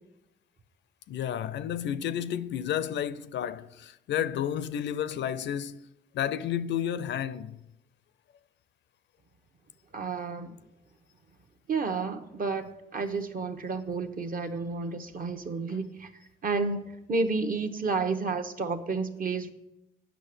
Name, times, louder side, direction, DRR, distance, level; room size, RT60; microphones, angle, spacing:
voice 1, 1.1-5.8 6.1-7.6 15.7-15.8, left 9 dB, 65° left, 0.5 m, -31 dB
voice 2, 9.9-10.6 11.7-16.1 16.4-19.5, right 4 dB, 45° right, 1.0 m, -31 dB
9.1 x 6.0 x 6.7 m
cardioid pair, 90°, 20 cm